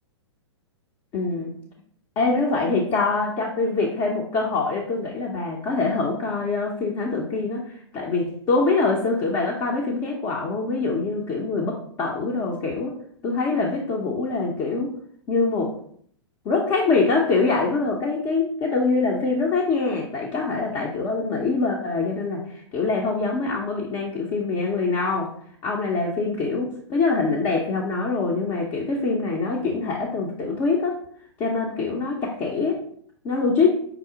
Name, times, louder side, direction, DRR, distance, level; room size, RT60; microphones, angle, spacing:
voice 1, 1.1-1.5 2.2-12.9 13.2-14.9 15.3-15.7 16.4-25.3 25.6-31.0 31.4-32.8 33.2-33.9, left 3 dB, 30° left, -1 dB, 0.7 m, -24 dB
5.7 x 2.1 x 3.8 m, 0.63 s
hypercardioid pair, 120°, 15 cm